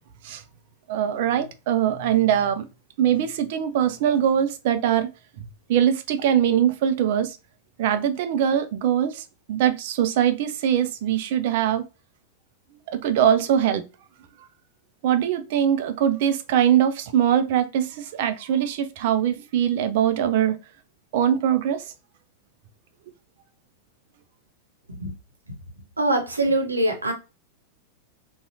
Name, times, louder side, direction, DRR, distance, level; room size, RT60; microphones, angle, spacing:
voice 1, 0.9-2.6 3.0-5.1 5.7-7.4 7.8-11.8 12.9-13.8 15.0-20.6 21.1-21.8, right 10 dB, 50° right, 0.5 m, -22 dB
voice 2, 26.0-27.1, right 1 dB, 80° right, 0.9 m, -23 dB
4.1 x 2.4 x 2.6 m
figure-of-eight pair, 90°, 0 cm